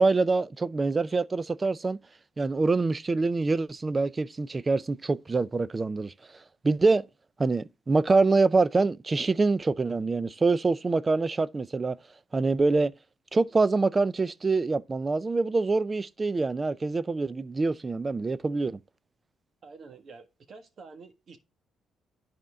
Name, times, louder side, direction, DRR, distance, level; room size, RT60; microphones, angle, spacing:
voice 1, 0.0-2.0 2.4-6.1 6.6-7.0 7.4-12.0 12.3-12.9 13.3-18.8, right 3 dB, 25° right, 0.4 m, -25 dB
voice 2, 19.6-21.4, right 4 dB, 50° right, 1.5 m, -48 dB
10.5 x 4.4 x 3.6 m
cardioid pair, 90°, 0 cm